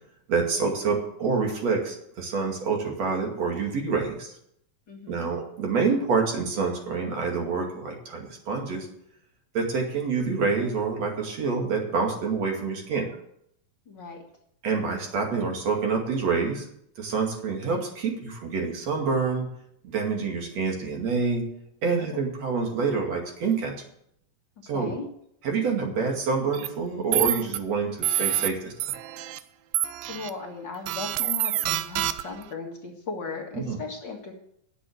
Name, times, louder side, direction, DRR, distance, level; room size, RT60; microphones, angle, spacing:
voice 1, 0.3-4.3 5.1-8.9 9.5-13.1 14.6-16.7 17.0-19.5 19.9-21.5 21.8-23.8 24.7-25.0 25.4-28.9 33.5-33.8, right 4 dB, 50° right, 1 dB, 3.3 m, -27 dB
voice 2, 4.9-5.3 13.9-14.2 21.9-22.1 24.7-25.1 30.1-34.3, left 4 dB, 40° left, 0 dB, 1.8 m, -37 dB
sound 1, 26.5-26.7 27.1-27.6 28.0-28.5 28.8-29.4 29.7-30.3 30.9-32.4, right 13 dB, 90° right, 2.4 m, -27 dB
10.5 x 7.9 x 8.0 m, 0.72 s
omnidirectional pair, 4.1 m